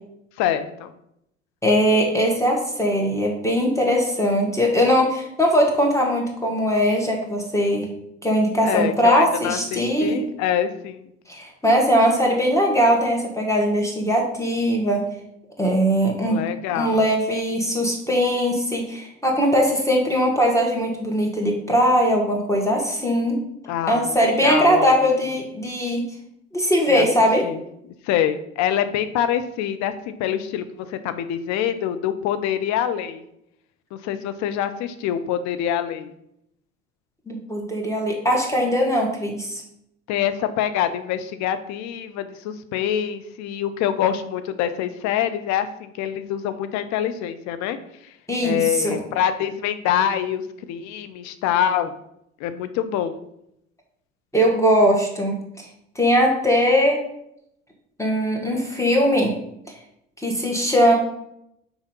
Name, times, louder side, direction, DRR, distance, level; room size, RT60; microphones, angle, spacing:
voice 1, 0.4-0.9 8.6-11.1 16.2-17.0 23.7-25.0 26.9-27.1 27.4-27.6 28.0-33.2 33.9-36.1 40.1-47.8 48.4-50.4 50.7-51.9 52.4-53.2, left 10 dB, 50° left, 10 dB, 0.7 m, -25 dB
voice 2, 1.6-7.9 8.2-10.2 11.3-15.1 15.6-16.4 16.7-23.4 23.9-26.1 26.5-27.5 37.3-39.6 48.3-49.0 54.3-55.7 56.0-57.0 58.0-59.3 60.2-61.0, equal, 10° left, 0 dB, 1.8 m, -20 dB
5.6 x 4.3 x 5.2 m, 0.77 s
figure-of-eight pair, 60°, 36 cm